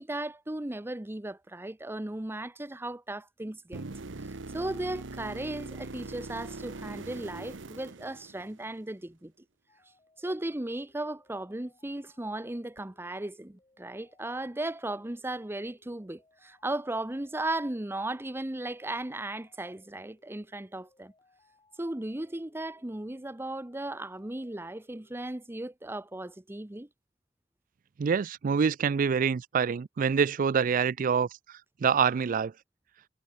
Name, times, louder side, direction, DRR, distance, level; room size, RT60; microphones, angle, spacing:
voice 1, 0.0-3.8 4.2-9.3 10.2-21.1 21.8-26.9, right 1 dB, 10° right, 0.8 m, -36 dB
sound 1, 3.7-8.8 12.8-12.9, right 3 dB, 90° right, 1.0 m, -42 dB
sound 2, 9.7-25.2, left 2 dB, 25° left, 4.6 m, -67 dB
voice 2, 28.0-31.3 31.8-32.5, right 6 dB, 45° right, 0.4 m, -26 dB
head